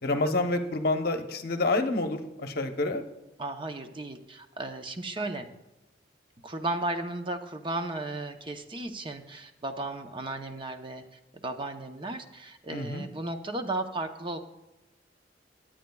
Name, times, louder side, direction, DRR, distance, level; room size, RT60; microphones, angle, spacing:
voice 1, 0.0-3.0 12.7-13.1, left 2 dB, 55° left, 6 dB, 0.9 m, -28 dB
voice 2, 3.4-5.5 6.4-11.0 11.3-14.4, right 2 dB, 25° right, 5 dB, 0.7 m, -35 dB
19.0 x 8.8 x 2.3 m, 0.96 s
head